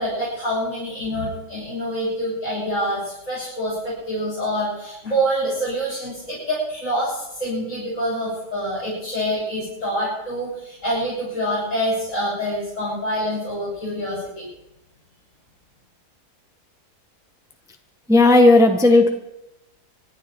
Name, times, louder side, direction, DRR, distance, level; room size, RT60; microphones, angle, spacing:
voice 1, 0.0-14.5, equal, 50° left, -7 dB, 8.0 m, -26 dB
voice 2, 18.1-19.1, left 2 dB, ahead, 4 dB, 1.4 m, -13 dB
26.0 x 11.5 x 4.6 m, 0.87 s
omnidirectional pair, 1.7 m